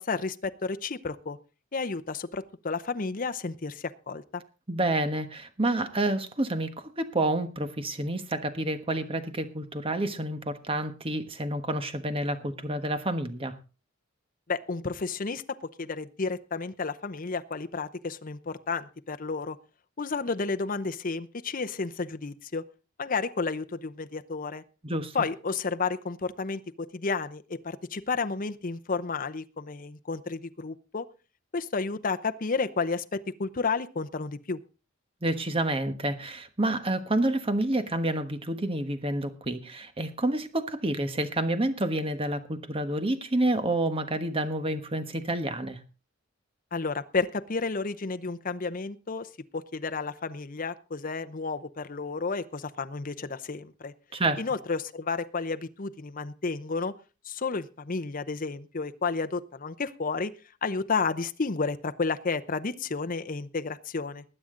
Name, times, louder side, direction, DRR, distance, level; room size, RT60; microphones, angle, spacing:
voice 1, 0.0-1.4 1.7-4.4 14.5-15.4 15.8-19.6 20.0-22.6 23.0-24.6 25.1-31.1 31.5-34.6 46.7-53.9 54.4-56.9 57.2-60.3 60.6-64.2, left 4 dB, 45° left, 9 dB, 0.7 m, -31 dB
voice 2, 4.7-13.6 24.8-25.2 35.2-45.8 54.1-54.4, right 1 dB, 30° right, 9 dB, 1.3 m, -29 dB
20.5 x 8.7 x 3.8 m, 0.33 s
head